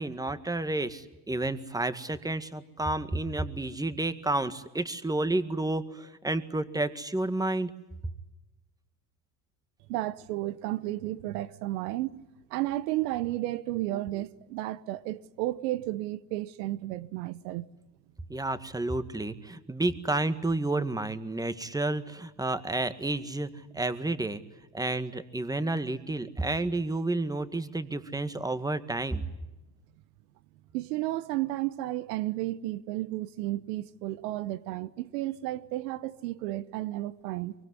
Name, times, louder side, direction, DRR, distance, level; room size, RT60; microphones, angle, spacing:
voice 1, 0.0-7.7 8.0-8.1 18.3-24.4 24.7-29.2, right 2 dB, 5° right, 1.9 m, -30 dB
voice 2, 9.9-17.7 30.7-37.5, right 16 dB, 75° right, 1.1 m, -33 dB
24.5 x 24.0 x 9.7 m
hypercardioid pair, 80°, 48 cm